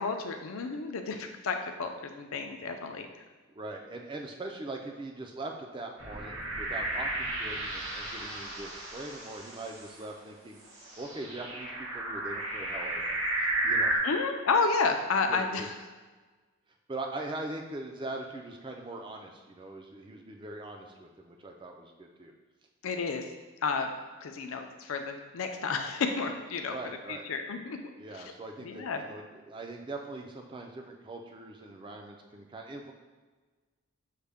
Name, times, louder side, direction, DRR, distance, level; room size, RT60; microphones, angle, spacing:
voice 1, 0.0-3.1 14.0-15.6 22.8-23.2 23.6-23.9 24.2-26.8 27.1-27.8 28.6-29.0, left 4 dB, 75° left, 5 dB, 0.4 m, -31 dB
voice 2, 3.6-10.6 11.0-14.0 15.3-15.7 16.9-22.3 26.6-27.3 28.0-32.9, right 2 dB, 20° right, 2 dB, 0.4 m, -41 dB
sound 1, 6.0-9.9 10.8-14.0, right 2 dB, 75° right, 1.0 m, -33 dB
6.4 x 2.2 x 3.5 m, 1.3 s
head